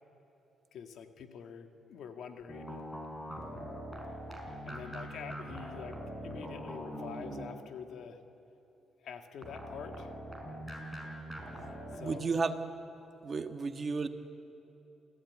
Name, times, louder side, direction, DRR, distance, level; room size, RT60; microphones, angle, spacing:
voice 1, 0.7-2.9 4.7-8.2 9.0-10.1 11.9-12.3, left 7 dB, 70° left, 5 dB, 1.9 m, -46 dB
sound 1, 2.5-7.8 9.4-12.0, equal, 5° left, 5.6 m, -43 dB
voice 2, 12.0-12.5 13.2-14.1, right 4 dB, 40° right, 7 dB, 1.5 m, -32 dB
27.5 x 16.0 x 9.4 m, 2.9 s
cardioid pair, 90°, 0 cm